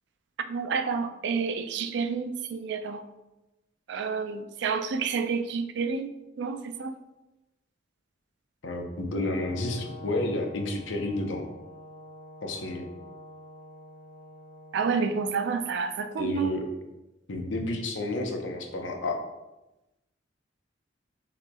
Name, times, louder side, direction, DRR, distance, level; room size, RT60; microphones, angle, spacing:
voice 1, 0.5-3.1 3.9-6.1 6.4-6.9 14.7-16.6, right 5 dB, 65° right, 9 dB, 0.4 m, -29 dB
voice 2, 8.6-11.5 12.4-12.8 16.2-16.6 17.3-19.2, left 2 dB, 90° left, 3 dB, 0.7 m, -30 dB
Brass instrument, 9.1-15.2, left 1 dB, 45° left, 0.4 m, -47 dB
6.6 x 3.1 x 2.3 m, 1.0 s
head